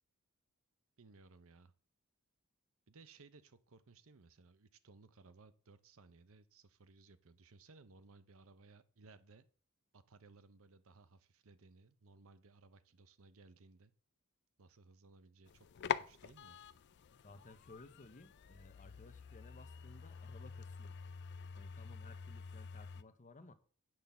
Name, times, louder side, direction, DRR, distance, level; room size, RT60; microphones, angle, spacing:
voice 1, 1.0-1.7 2.9-9.5 9.9-13.9 14.6-16.6, right 3 dB, 65° right, 0.8 m, -61 dB
sound 1, 15.5-23.0, left 7 dB, 50° left, 0.4 m, -46 dB
voice 2, 17.2-21.0 21.5-23.5, left 2 dB, 35° left, 0.8 m, -58 dB
8.9 x 3.9 x 6.9 m
head